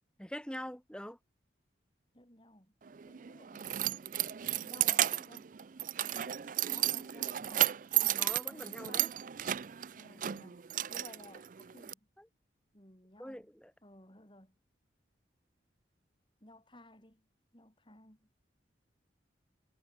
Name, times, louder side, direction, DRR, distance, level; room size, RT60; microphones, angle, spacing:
voice 1, 0.2-1.2 8.2-9.1 12.2-12.3 13.2-13.7, equal, 5° left, 4.4 m, -44 dB
voice 2, 2.1-2.7 3.0-3.8 4.4-5.5 6.0-7.8 8.5-9.1 10.0-12.0 12.7-13.5 13.8-14.6 16.4-17.3 17.5-18.3, left 1 dB, 25° left, 5.3 m, -57 dB
Keys jangling, 2.9-11.9, right 13 dB, 45° right, 0.4 m, -33 dB
head